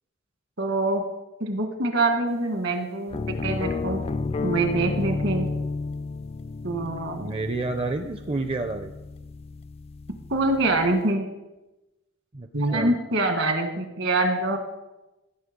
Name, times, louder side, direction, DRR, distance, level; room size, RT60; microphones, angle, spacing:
voice 1, 0.6-1.0 1.4-4.1 4.4-5.5 6.6-7.3 10.3-11.3 12.5-14.6, right 2 dB, 65° right, 5 dB, 1.6 m, -25 dB
sound 1, 3.1-11.0, left 3 dB, 30° left, 0.3 m, -32 dB
voice 2, 7.2-8.9 12.3-13.0, right 2 dB, 30° right, 6 dB, 0.5 m, -29 dB
15.5 x 6.6 x 5.2 m, 1.0 s
head